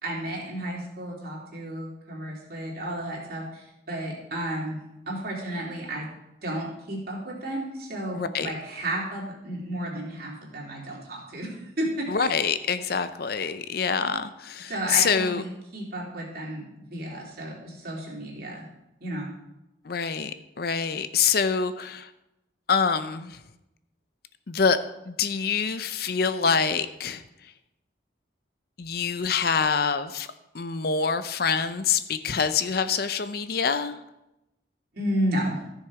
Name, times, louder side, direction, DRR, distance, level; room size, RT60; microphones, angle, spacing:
voice 1, 0.0-4.8 5.1-6.1 6.4-12.3 14.7-18.6 19.0-19.3 34.9-35.6, right 1 dB, 55° right, -3 dB, 3.1 m, -32 dB
voice 2, 8.1-8.5 12.1-15.4 19.8-22.1 22.7-23.4 24.5-24.8 25.1-27.2 28.8-30.3 30.5-33.9, left 6 dB, 55° left, 11 dB, 0.6 m, -25 dB
14.5 x 6.6 x 4.8 m, 0.90 s
head